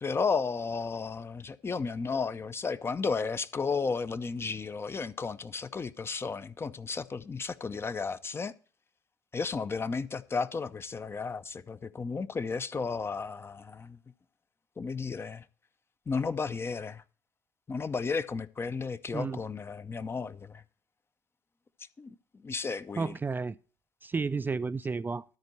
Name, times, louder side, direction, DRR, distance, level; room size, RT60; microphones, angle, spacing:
voice 1, 0.0-8.5 9.3-14.0 14.8-15.4 16.1-17.0 17.7-20.6 22.0-22.1 22.4-23.1, left 4 dB, 25° left, 0.7 m, -33 dB
voice 2, 23.0-23.6 24.0-25.2, right 4 dB, 20° right, 0.4 m, -32 dB
13.0 x 4.4 x 7.8 m
figure-of-eight pair, 55°, 9 cm